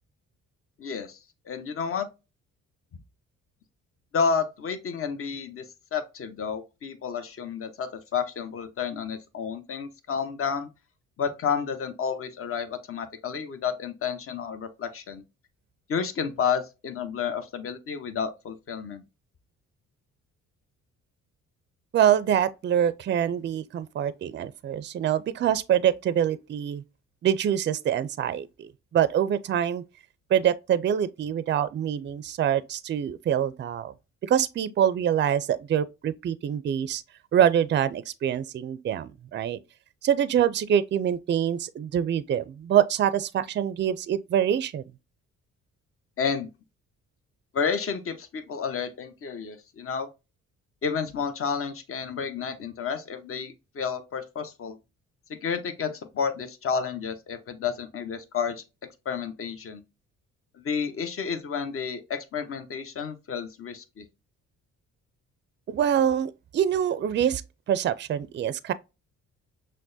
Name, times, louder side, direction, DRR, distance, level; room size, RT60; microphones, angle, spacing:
voice 1, 0.8-1.2 1.5-2.1 4.1-5.6 5.9-10.7 11.2-15.2 15.9-19.0 46.2-46.5 47.5-50.1 50.8-54.8 55.4-58.6 59.0-59.8 60.6-64.0, left 6 dB, 45° left, 0.8 m, -31 dB
voice 2, 21.9-26.8 27.2-29.8 30.3-33.9 34.2-37.0 37.3-39.6 40.0-44.8 65.7-67.4 67.7-68.7, right 9 dB, 40° right, 0.4 m, -25 dB
6.0 x 2.2 x 2.6 m
cardioid pair, 90°, 30 cm